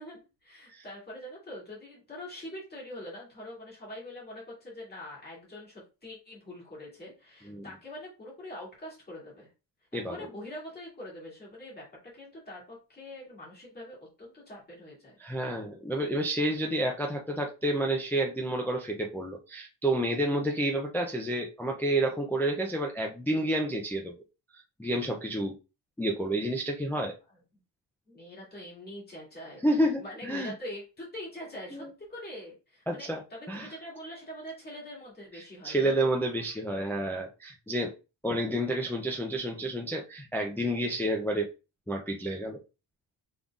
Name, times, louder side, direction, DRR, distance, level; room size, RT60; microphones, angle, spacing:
voice 1, 0.0-9.5 9.9-15.2 28.1-36.1, left 1 dB, 20° left, 2.3 m, -44 dB
voice 2, 15.2-24.1 24.8-25.5 26.0-27.2 29.6-30.5 31.7-31.9 32.9-33.2 33.5-33.7 35.4-37.9 38.2-41.5 41.9-42.6, right 1 dB, 5° left, 0.4 m, -30 dB
5.4 x 3.7 x 2.4 m
wide cardioid pair, 170°, 46 cm